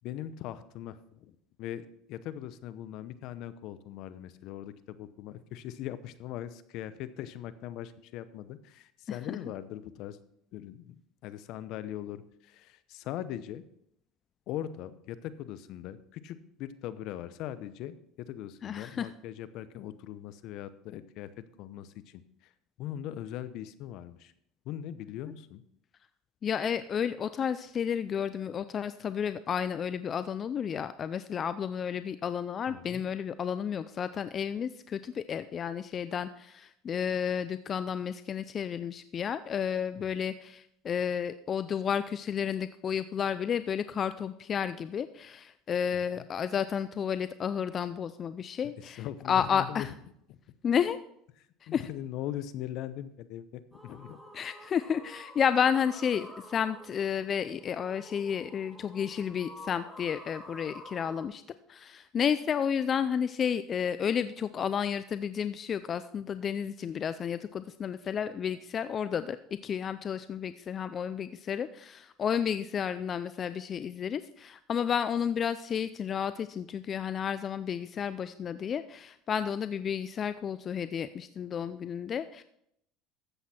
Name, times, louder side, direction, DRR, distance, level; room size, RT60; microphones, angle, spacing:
voice 1, 0.0-10.2 10.5-13.6 14.5-22.5 22.8-24.3 24.6-25.6 32.7-33.0 40.0-40.1 45.9-46.3 48.8-49.9 50.3-50.4 51.7-54.2, left 12 dB, 65° left, 14 dB, 0.8 m, -40 dB
voice 2, 9.1-9.4 18.6-19.1 26.4-49.9 50.6-51.0 51.6-51.8 54.3-61.4 61.7-69.4 69.6-82.4, left 8 dB, 40° left, 13 dB, 0.4 m, -31 dB
sound 1, 53.7-61.2, equal, ahead, 2.1 m, -49 dB
13.5 x 8.1 x 4.3 m, 0.73 s
supercardioid pair, 105°, 0 cm